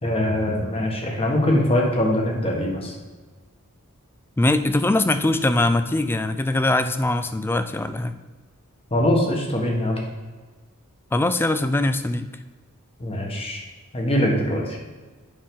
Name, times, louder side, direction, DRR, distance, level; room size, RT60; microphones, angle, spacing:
voice 1, 0.0-2.9 8.9-10.0 13.0-13.6 13.9-14.8, left 1 dB, 25° left, 0 dB, 1.4 m, -22 dB
voice 2, 4.4-8.2 11.1-12.3, left 2 dB, 10° left, 10 dB, 0.3 m, -22 dB
8.7 x 5.7 x 3.7 m, 1.3 s
head